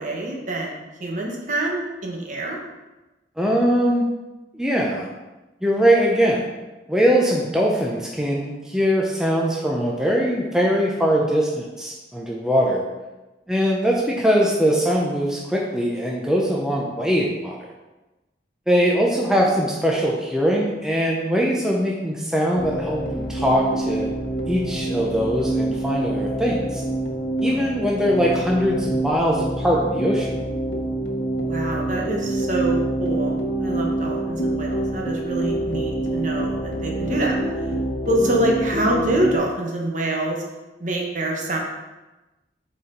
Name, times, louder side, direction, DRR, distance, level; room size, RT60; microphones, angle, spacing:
voice 1, 0.0-2.6 27.4-27.7 31.4-37.4 38.0-40.4 40.8-41.6, right 1 dB, 45° right, -1 dB, 1.1 m, -25 dB
voice 2, 3.4-4.0 4.5-5.1 5.6-6.5 6.9-12.8 13.5-17.7 18.7-24.1 24.5-26.8 27.4-30.4, equal, 5° right, -3 dB, 0.6 m, -21 dB
sound 1, 22.6-39.4, right 1 dB, 85° left, 1.0 m, -26 dB
7.0 x 4.3 x 3.8 m, 1.1 s
head